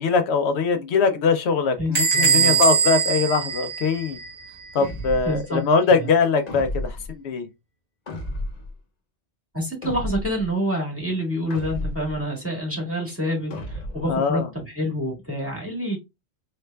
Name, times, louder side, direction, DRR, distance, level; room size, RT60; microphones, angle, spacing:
voice 1, 0.0-4.2 4.7-7.5 14.1-14.5, left 4 dB, 75° left, 0.8 m, -22 dB
voice 2, 1.8-2.6 5.2-5.6 5.9-6.1 9.5-16.0, equal, 10° right, 1.7 m, -27 dB
Bell / Door, 2.0-4.5, right 6 dB, 35° right, 1.2 m, -21 dB
sound 1, 4.8-5.4 6.5-7.1 8.1-8.7 9.8-10.5 11.5-12.2 13.5-14.1, left 1 dB, 40° left, 0.8 m, -32 dB
4.7 x 3.2 x 2.2 m
omnidirectional pair, 1.1 m